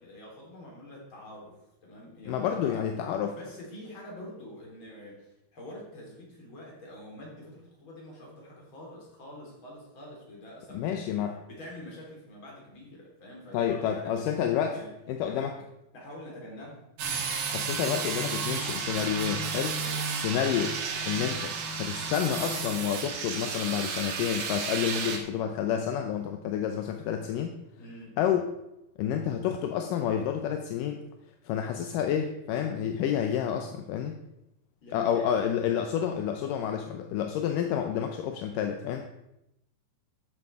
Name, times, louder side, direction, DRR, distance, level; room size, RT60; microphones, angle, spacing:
voice 1, 0.0-2.9 3.3-11.2 11.5-14.9 15.2-15.5 15.9-16.9 19.8-20.2 27.8-28.2 34.8-35.3, left 1 dB, 30° left, -3 dB, 4.0 m, -46 dB
voice 2, 2.3-3.4 10.7-11.3 13.5-14.7 15.1-15.5 17.5-19.8 20.1-20.8 21.1-27.5 28.2-28.6 29.0-31.0 31.4-34.2 34.9-39.0, left 9 dB, 75° left, 5 dB, 2.1 m, -29 dB
sound 1, 17.0-25.2, right 5 dB, 80° right, 3.4 m, -32 dB
13.0 x 8.1 x 4.8 m, 0.86 s
omnidirectional pair, 4.5 m